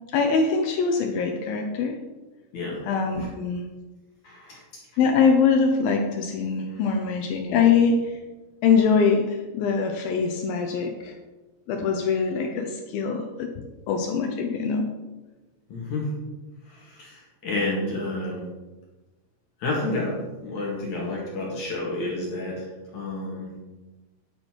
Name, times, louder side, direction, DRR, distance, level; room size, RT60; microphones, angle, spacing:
voice 1, 0.1-2.0 2.9-3.6 5.0-8.1 8.6-11.1 11.7-14.9, left 5 dB, 80° left, 4 dB, 2.1 m, -23 dB
voice 2, 4.2-4.8 6.7-6.8 7.4-7.6 15.7-16.1 16.7-18.4 19.6-23.5, left 2 dB, 50° left, -4 dB, 2.8 m, -30 dB
11.0 x 7.9 x 4.6 m, 1.2 s
omnidirectional pair, 5.2 m